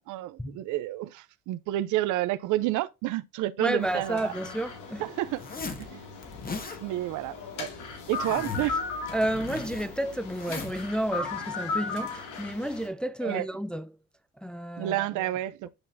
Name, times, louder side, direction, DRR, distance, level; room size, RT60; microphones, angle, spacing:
voice 1, 0.1-4.3 5.0-5.4 5.8-6.1 6.5-7.7 8.1-8.8 13.2-13.5 14.8-15.7, right 15 dB, 80° right, 0.6 m, -30 dB
voice 2, 3.6-5.0 9.1-13.9 14.4-15.3, right 1 dB, 5° left, 0.3 m, -31 dB
sound 1, 3.8-12.9, left 4 dB, 85° left, 2.3 m, -37 dB
Zipper (clothing), 5.3-5.9 6.2-6.8 7.6-8.8 9.1-10.8, left 4 dB, 30° left, 1.4 m, -38 dB
9.9 x 3.9 x 2.6 m
cardioid pair, 110°, 30 cm